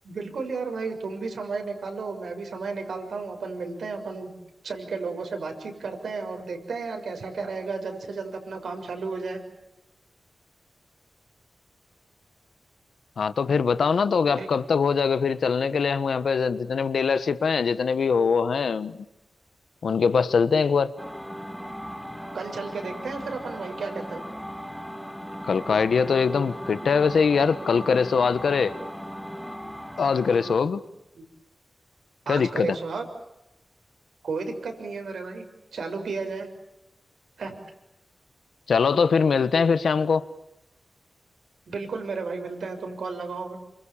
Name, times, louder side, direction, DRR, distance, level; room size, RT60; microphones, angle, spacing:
voice 1, 0.0-4.3 4.6-9.4 14.4-14.5 22.3-24.2 31.1-31.2 32.2-33.1 34.2-35.4 35.7-36.5 37.4-37.6 41.7-43.6, right 4 dB, 85° right, 6.5 m, -33 dB
voice 2, 13.2-19.0 19.8-20.9 25.5-28.7 30.0-30.8 32.3-32.8 38.7-40.2, left 5 dB, 75° left, 1.3 m, -22 dB
sound 1, 21.0-30.6, equal, ahead, 2.5 m, -38 dB
29.5 x 26.0 x 7.3 m
wide cardioid pair, 155°, 0 cm